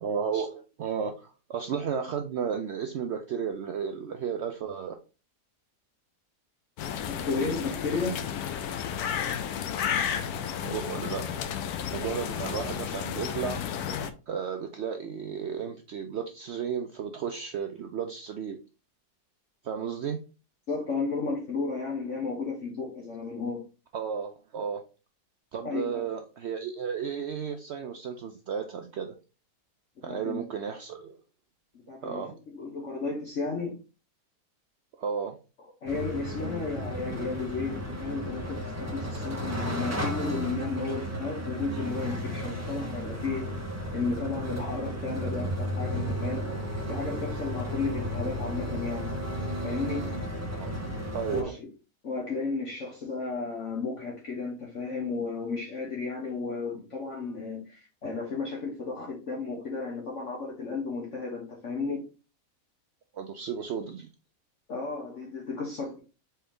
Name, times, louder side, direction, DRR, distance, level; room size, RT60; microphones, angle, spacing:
voice 1, 0.0-4.9 10.6-11.3 11.9-13.6 14.3-18.6 19.6-20.2 23.9-24.8 25.5-29.1 30.0-31.2 32.0-32.4 35.0-35.4 50.6-50.8 51.1-51.5 63.1-64.1, right 7 dB, 75° right, 0.6 m, -33 dB
sound 1, 6.8-14.1, left 8 dB, 75° left, 1.1 m, -32 dB
voice 2, 7.1-8.2 20.7-23.6 25.6-26.0 30.1-30.5 31.9-32.2 32.5-33.8 35.8-43.4 43.9-46.5 46.9-49.1 49.6-50.1 51.3-51.7 52.0-62.0 64.7-66.0, left 4 dB, 50° left, 1.2 m, -33 dB
sound 2, 35.9-51.4, equal, 15° right, 0.5 m, -33 dB
4.4 x 3.4 x 3.6 m
omnidirectional pair, 1.7 m